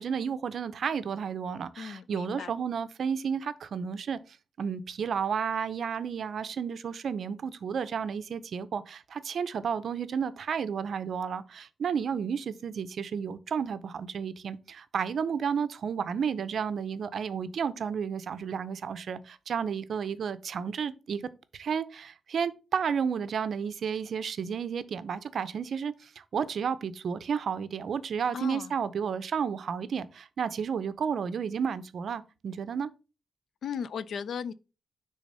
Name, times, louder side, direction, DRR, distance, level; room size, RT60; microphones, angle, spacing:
voice 1, 0.0-4.2 4.6-21.2 21.5-32.9, right 7 dB, 60° right, 0.5 m, -32 dB
voice 2, 1.8-2.5 28.3-28.7 33.6-34.5, left 7 dB, 70° left, 0.4 m, -36 dB
6.5 x 3.4 x 5.4 m
wide cardioid pair, 165°, 0 cm